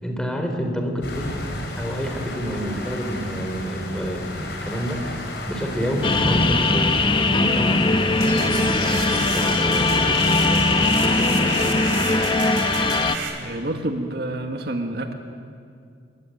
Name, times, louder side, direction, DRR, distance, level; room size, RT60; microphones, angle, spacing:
voice 1, 0.0-1.5 1.8-5.0 5.5-7.8 8.2-11.8, equal, 5° left, 2 dB, 4.0 m, -28 dB
sound 1, 1.0-13.1, left 2 dB, 60° left, 5.6 m, -34 dB
sound 2, 6.0-13.2, left 3 dB, 25° left, 1.2 m, -20 dB
sound 3, 8.1-13.3, right 4 dB, 85° right, 4.3 m, -31 dB
voice 2, 13.4-15.1, right 1 dB, 60° right, 5 dB, 1.9 m, -28 dB
28.0 x 23.0 x 9.2 m, 2.3 s
head